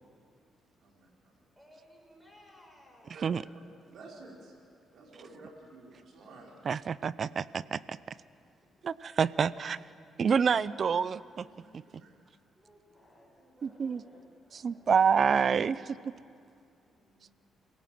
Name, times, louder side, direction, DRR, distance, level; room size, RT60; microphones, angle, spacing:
voice 1, 0.8-1.4 3.1-3.3 3.9-4.6 4.9-6.5 11.4-12.1, right 3 dB, 65° right, -1 dB, 4.8 m, -52 dB
voice 2, 1.5-3.7 8.3-8.4 11.9-12.2 12.5-15.4 16.6-17.3, equal, 5° right, -1 dB, 6.6 m, -60 dB
voice 3, 6.6-8.2 8.8-9.8 10.2-11.5 11.7-11.8 13.6-14.0 14.6-16.1, right 6 dB, 50° right, 18 dB, 0.6 m, -28 dB
27.0 x 18.0 x 7.7 m, 2.3 s
cardioid pair, 90°, 0 cm